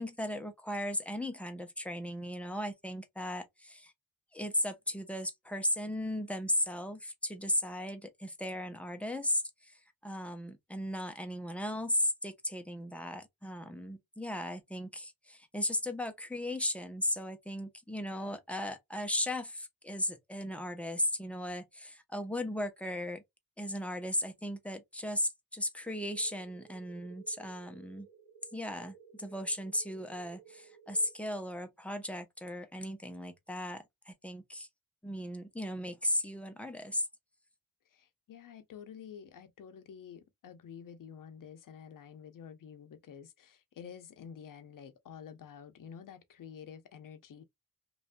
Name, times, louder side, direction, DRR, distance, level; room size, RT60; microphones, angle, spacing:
voice 1, 0.0-3.9 4.3-9.7 10.0-23.2 23.6-28.1 28.5-34.7 35.0-37.1, left 1 dB, 5° left, 0.7 m, -36 dB
sound 1, 26.1-31.1, right 8 dB, 85° right, 0.8 m, -57 dB
voice 2, 37.9-47.4, left 7 dB, 65° left, 0.7 m, -49 dB
3.1 x 2.5 x 2.2 m
cardioid pair, 95°, 36 cm